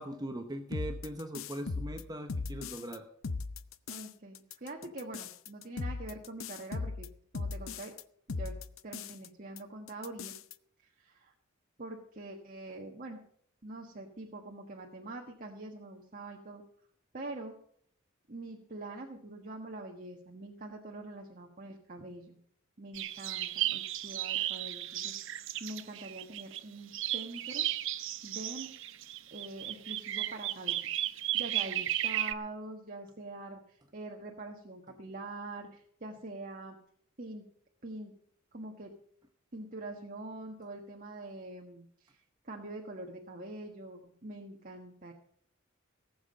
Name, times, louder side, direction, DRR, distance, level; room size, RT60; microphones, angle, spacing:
voice 1, 0.0-3.0, right 1 dB, 20° right, 6 dB, 0.9 m, -40 dB
sound 1, 0.7-3.0 3.2-4.1 4.3-8.0 8.3-9.3 9.6-9.7 9.9-10.5, left 4 dB, 70° left, 0.7 m, -38 dB
voice 2, 3.9-7.1 7.3-7.9 8.4-8.6 8.8-10.3 10.8-11.3 11.8-13.2 13.6-16.6 17.1-17.5 18.3-22.4 22.8-27.7 28.2-28.7 29.3-30.8 31.3-36.8 37.2-37.4 37.8-38.1 38.5-38.9 39.5-45.1, right 2 dB, 40° right, 1 dB, 1.5 m, -44 dB
sound 2, 22.9-26.6 26.9-32.3, right 13 dB, 65° right, 0.8 m, -34 dB
18.0 x 7.4 x 6.4 m, 0.66 s
head